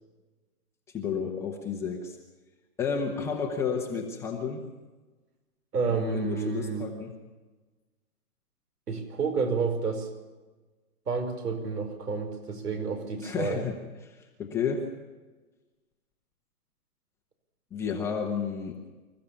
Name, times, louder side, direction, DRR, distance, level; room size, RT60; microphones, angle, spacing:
voice 1, 0.9-2.2 2.8-4.6 5.9-7.1 13.2-13.8 14.1-14.9 17.7-18.8, left 6 dB, 5° left, 1 dB, 1.0 m, -31 dB
voice 2, 5.7-6.9 8.9-10.1 11.1-13.6, right 5 dB, 90° right, 7 dB, 5.0 m, -30 dB
26.0 x 14.5 x 7.1 m, 1.2 s
hypercardioid pair, 165°, 45 cm